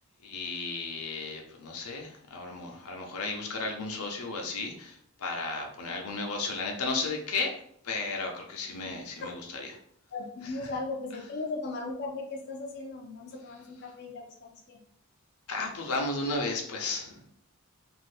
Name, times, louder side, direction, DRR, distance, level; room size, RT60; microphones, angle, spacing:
voice 1, 0.2-9.8 10.4-10.7 15.5-17.3, left 3 dB, 90° left, 1 dB, 0.7 m, -34 dB
voice 2, 10.1-14.8, left 3 dB, 50° left, -1 dB, 0.5 m, -37 dB
2.7 x 2.6 x 3.2 m, 0.66 s
head